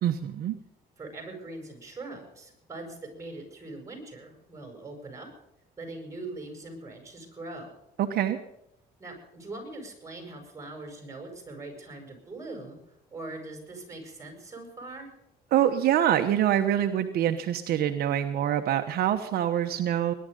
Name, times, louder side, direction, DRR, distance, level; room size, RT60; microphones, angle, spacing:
voice 1, 0.0-0.5 8.0-8.4 15.5-20.1, right 11 dB, 65° right, 6 dB, 1.1 m, -25 dB
voice 2, 1.0-5.3 5.8-7.7 9.0-12.8 13.1-15.1, right 2 dB, 20° right, 3 dB, 7.6 m, -41 dB
21.0 x 11.5 x 5.4 m, 0.81 s
cardioid pair, 110°, 17 cm